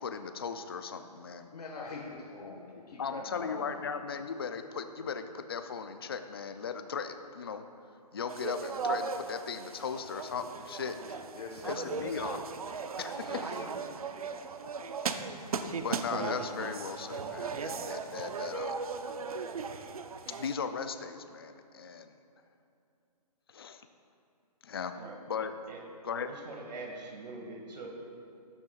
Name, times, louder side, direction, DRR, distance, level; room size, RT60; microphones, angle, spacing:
voice 1, 0.0-1.5 3.0-7.6 8.1-11.2 11.6-12.4 12.7-13.7 15.6-18.8 20.3-22.1 23.5-23.8 24.6-25.5 26.0-26.3, left 6 dB, 35° left, 8 dB, 0.4 m, -37 dB
voice 2, 1.5-3.8 11.3-12.2 13.3-13.8, left 3 dB, 70° left, 0 dB, 1.4 m, -43 dB
sound 1, 8.3-20.6, right 5 dB, 60° right, 0.6 m, -37 dB
voice 3, 26.3-27.9, right 3 dB, 85° right, 0 dB, 1.9 m, -43 dB
13.5 x 9.5 x 2.4 m, 2.6 s
hypercardioid pair, 175°, 21 cm